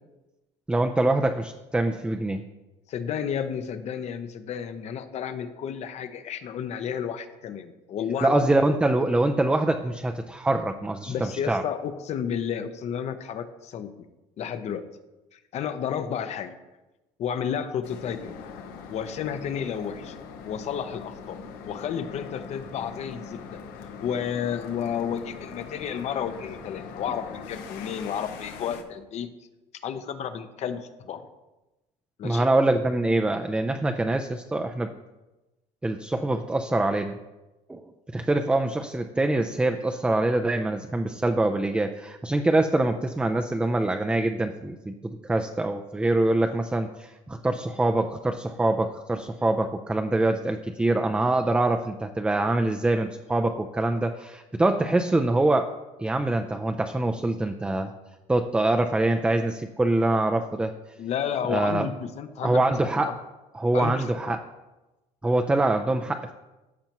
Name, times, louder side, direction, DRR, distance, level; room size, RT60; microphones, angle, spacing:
voice 1, 0.7-2.4 8.2-11.6 32.2-34.9 35.8-37.2 37.7-37.8 38.1-55.7 56.0-57.9 58.3-60.7 61.5-61.9 62.4-63.2 63.5-64.4 65.2-66.3, right 2 dB, 5° right, 6 dB, 0.4 m, -24 dB
voice 2, 2.9-8.5 11.1-13.9 14.4-14.8 15.3-16.5 17.2-18.4 18.9-20.2 20.4-21.4 21.7-23.5 24.0-29.3 29.8-31.2 32.2-32.5 61.0-63.1 63.7-64.4, left 8 dB, 50° left, 10 dB, 0.8 m, -32 dB
sound 1, 17.8-28.8, left 5 dB, 75° left, 1.0 m, -41 dB
14.5 x 5.9 x 3.0 m, 1.0 s
supercardioid pair, 105°, 15 cm